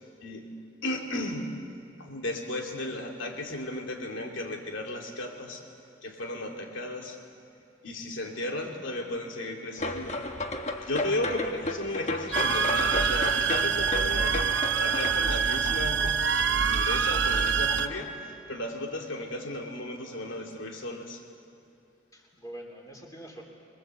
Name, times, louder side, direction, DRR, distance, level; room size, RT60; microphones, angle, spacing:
voice 1, 0.2-0.5 0.8-1.5 2.0-5.7 6.0-7.2 7.8-10.3 10.8-16.3 16.6-21.2, left 1 dB, 80° left, 2 dB, 2.9 m, -35 dB
sound 1, 9.8-15.1, left 2 dB, 35° left, 1.2 m, -33 dB
sound 2, 12.1-18.0, left 3 dB, 60° left, 2.1 m, -41 dB
sound 3, 12.3-17.9, right 6 dB, 70° right, 0.8 m, -25 dB
voice 2, 22.1-23.4, right 2 dB, 20° left, 0 dB, 3.3 m, -44 dB
25.5 x 21.5 x 7.9 m, 2.5 s
head